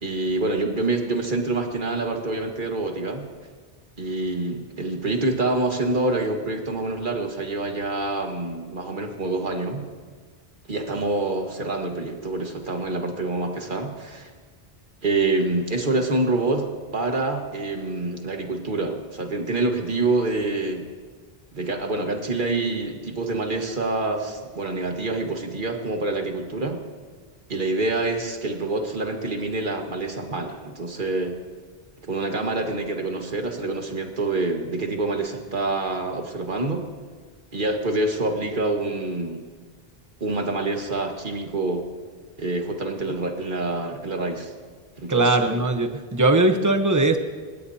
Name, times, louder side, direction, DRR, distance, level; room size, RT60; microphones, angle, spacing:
voice 1, 0.0-3.3 4.0-9.8 10.7-14.3 15.0-20.8 21.5-26.8 27.5-31.3 32.1-36.8 37.5-39.5 40.2-41.8 42.4-44.5 45.0-45.6, right 2 dB, 55° right, 3 dB, 1.9 m, -26 dB
voice 2, 45.1-47.2, right 2 dB, 20° right, 6 dB, 1.0 m, -20 dB
30.0 x 16.5 x 2.9 m, 1.5 s
omnidirectional pair, 1.0 m